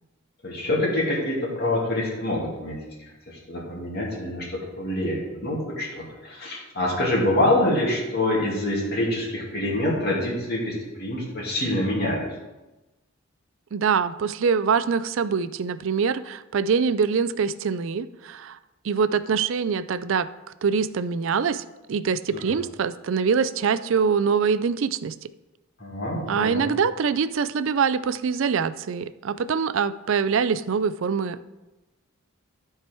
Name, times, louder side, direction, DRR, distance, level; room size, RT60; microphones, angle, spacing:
voice 1, 0.4-2.8 3.3-12.2 22.3-22.6 25.8-26.7, left 1 dB, 45° left, -3 dB, 2.5 m, -26 dB
voice 2, 13.7-18.6 18.8-20.3 20.6-25.1 26.3-31.4, right 6 dB, 60° right, 14 dB, 0.4 m, -24 dB
13.5 x 4.6 x 4.5 m, 1.0 s
head